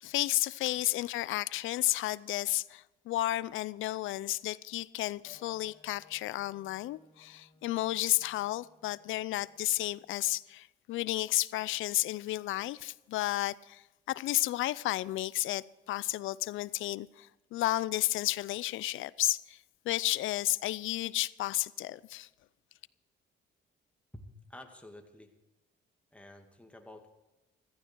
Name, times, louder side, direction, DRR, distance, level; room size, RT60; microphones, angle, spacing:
voice 1, 0.0-13.8 14.1-19.6 19.9-22.3, left 16 dB, 80° left, 0.5 m, -32 dB
sound 1, 5.2-10.3, left 3 dB, 25° left, 4.6 m, -63 dB
voice 2, 24.1-25.3 26.1-27.1, left 1 dB, 5° left, 2.3 m, -51 dB
15.0 x 14.5 x 4.6 m
cardioid pair, 90°, 20 cm